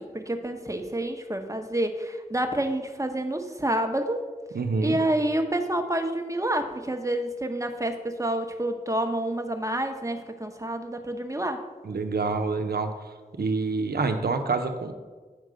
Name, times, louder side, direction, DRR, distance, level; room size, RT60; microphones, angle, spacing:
voice 1, 0.0-4.3 4.8-11.6, right 1 dB, 20° right, 6 dB, 0.9 m, -28 dB
voice 2, 4.5-5.0 11.8-12.9 13.3-14.9, right 4 dB, 90° right, 7 dB, 0.7 m, -27 dB
9.4 x 3.7 x 6.3 m, 1.4 s
cardioid pair, 40°, 16 cm